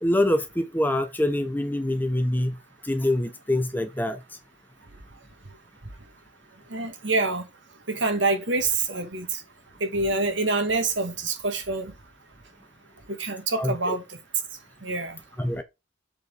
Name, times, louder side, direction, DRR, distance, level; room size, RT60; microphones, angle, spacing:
voice 1, 0.0-2.6 2.8-4.2 13.6-13.9 15.4-15.6, left 1 dB, 10° left, 0.8 m, -25 dB
voice 2, 6.7-7.5 7.9-9.4 9.8-11.9 13.1-14.2 14.8-15.2, right 3 dB, 70° right, 2.0 m, -26 dB
7.6 x 4.7 x 4.1 m
head